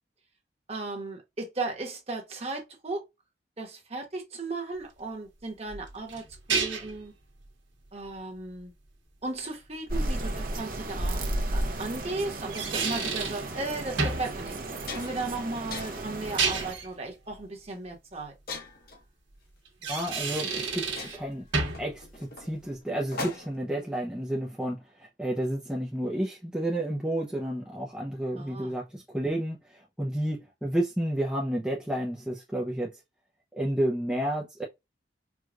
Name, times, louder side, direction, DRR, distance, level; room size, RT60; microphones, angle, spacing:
voice 1, 0.7-3.0 3.6-7.1 7.9-8.7 9.2-11.2 11.5-14.6 14.9-18.3 28.4-28.8, right 2 dB, 35° right, 1.1 m, -36 dB
sound 1, 5.7-7.0 10.2-10.3 12.3-13.5 14.0-14.3 16.1-16.9 19.7-21.2 21.5-21.9, right 4 dB, 85° right, 1.3 m, -30 dB
sound 2, 9.9-16.7, right 1 dB, 50° right, 0.8 m, -33 dB
sound 3, 13.4-13.6 14.2-14.3 14.6-15.3 15.7-16.2 16.8-17.1 18.5-19.0 20.1-20.2 20.6-20.7 21.0-23.7, left 3 dB, 50° left, 1.0 m, -40 dB
voice 2, 19.9-21.4 21.8-29.6 30.0-32.9 33.5-34.6, right 1 dB, 5° right, 0.5 m, -31 dB
4.6 x 2.3 x 2.3 m
head